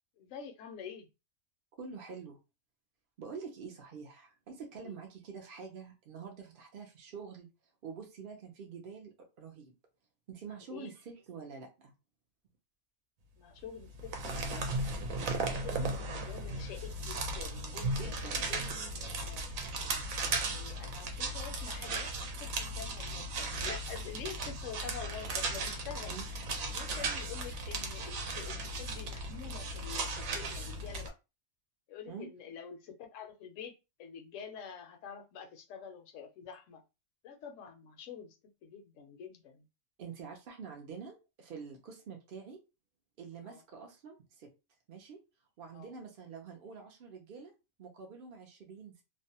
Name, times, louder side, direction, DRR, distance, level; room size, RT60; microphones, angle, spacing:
voice 1, 0.2-1.1 4.7-5.0 10.5-10.9 13.4-14.6 15.5-19.4 20.2-26.2 26.7-31.1 31.9-33.7 34.0-36.8 37.2-38.4 38.6-39.7 43.4-43.6 45.7-45.9, left 7 dB, 70° left, 0.9 m, -47 dB
voice 2, 1.8-2.4 3.2-7.5 7.8-9.7 10.3-11.9 15.2-15.5 18.0-18.5 26.1-26.3 32.1-32.3 40.0-42.6 43.2-44.5 44.9-45.2 45.6-47.5 47.8-49.0, right 5 dB, 60° right, 0.6 m, -46 dB
sound 1, 13.8-31.1, right 2 dB, 80° right, 1.0 m, -36 dB
2.6 x 2.1 x 2.7 m
omnidirectional pair, 1.4 m